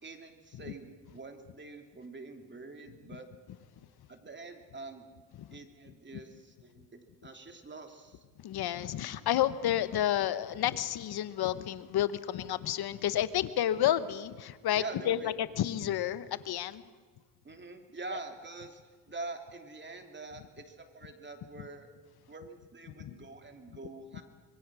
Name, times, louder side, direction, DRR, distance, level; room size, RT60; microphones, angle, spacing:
voice 1, 0.0-3.3 4.1-5.1 5.5-8.2 14.8-15.3 17.4-18.8 19.1-21.9 22.3-24.2, right 3 dB, 30° right, 5 dB, 3.2 m, -45 dB
voice 2, 8.4-16.8 23.0-23.1, left 11 dB, 70° left, 14 dB, 1.2 m, -30 dB
26.0 x 22.0 x 6.3 m, 1.4 s
cardioid pair, 80°, 39 cm